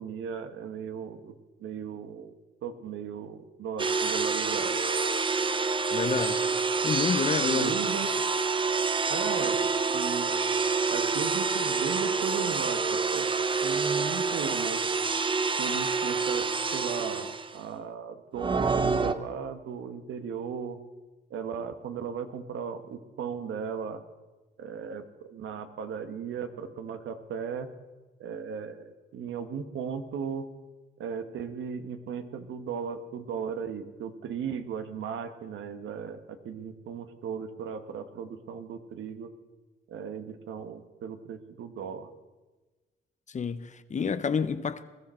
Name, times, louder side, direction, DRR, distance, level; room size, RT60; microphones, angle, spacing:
voice 1, 0.0-1.3 1.6-2.3 2.6-4.8 7.4-8.1 9.1-10.3 10.9-13.3 13.6-14.9 15.6-20.8 21.3-24.0 24.6-27.7 28.2-30.5 31.0-39.3 39.9-42.1, right 7 dB, 75° right, 1.4 m, -36 dB
sound 1, 3.8-17.6 18.3-19.1, right 4 dB, 25° right, 0.7 m, -27 dB
voice 2, 5.9-6.4 6.8-7.7 43.3-44.8, left 6 dB, 35° left, 0.9 m, -29 dB
21.0 x 13.0 x 4.4 m
cardioid pair, 90°, 20 cm